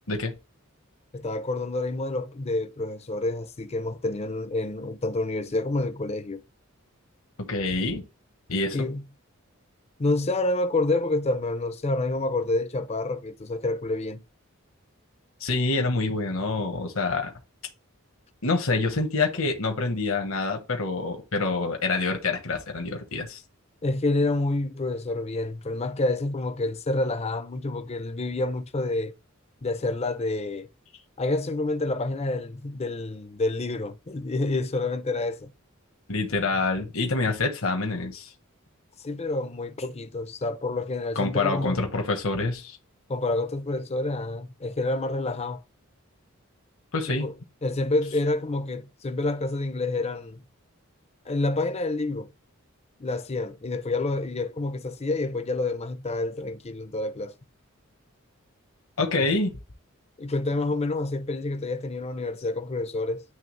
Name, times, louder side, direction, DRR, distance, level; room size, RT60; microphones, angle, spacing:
voice 1, 1.1-6.4 8.7-9.0 10.0-14.2 23.8-29.1 29.6-30.7 31.2-35.5 39.0-41.8 43.1-45.6 47.1-47.3 47.6-50.4 51.3-52.3 53.0-57.3 60.2-63.2, left 2 dB, 30° left, 0.6 m, -28 dB
voice 2, 7.5-8.0 8.5-8.8 15.4-17.3 18.4-23.4 36.1-38.3 41.1-42.8 46.9-47.3 59.0-59.5, left 3 dB, 70° left, 1.2 m, -26 dB
9.1 x 3.3 x 3.2 m
head